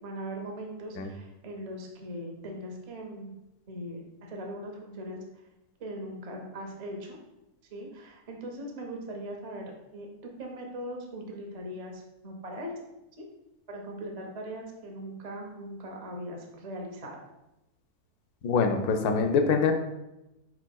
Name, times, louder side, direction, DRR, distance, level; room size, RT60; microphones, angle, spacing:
voice 1, 0.0-3.4 3.7-5.2 5.8-7.2 7.7-10.1 10.4-12.7 13.2-13.3 13.7-17.2, equal, 50° right, 1 dB, 0.4 m, -40 dB
voice 2, 18.4-19.7, left 5 dB, 90° left, 5 dB, 1.1 m, -24 dB
4.7 x 4.4 x 2.2 m, 0.93 s
omnidirectional pair, 1.6 m